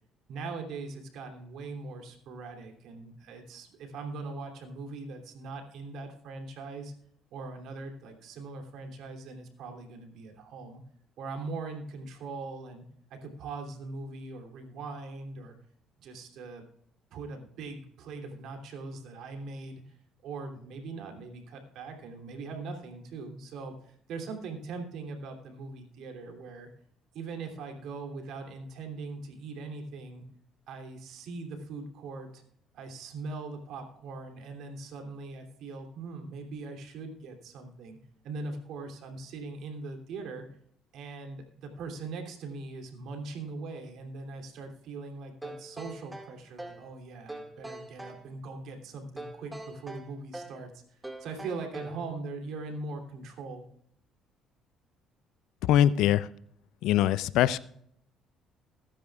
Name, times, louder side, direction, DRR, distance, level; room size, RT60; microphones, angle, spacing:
voice 1, 0.3-6.9 7.3-10.8 11.2-12.8 13.1-15.5 16.0-16.6 17.1-19.9 20.2-26.7 27.1-30.2 30.7-32.4 32.7-38.0 38.2-40.4 40.9-53.6, right 3 dB, 70° right, 3 dB, 3.0 m, -41 dB
sound 1, 45.4-46.9 47.3-48.2 49.2-50.6 51.0-52.1, right 2 dB, 15° right, 2.0 m, -43 dB
voice 2, 55.6-56.3 56.8-57.6, left 11 dB, 75° left, 18 dB, 0.5 m, -23 dB
21.0 x 10.0 x 2.4 m, 0.67 s
supercardioid pair, 65°, 0 cm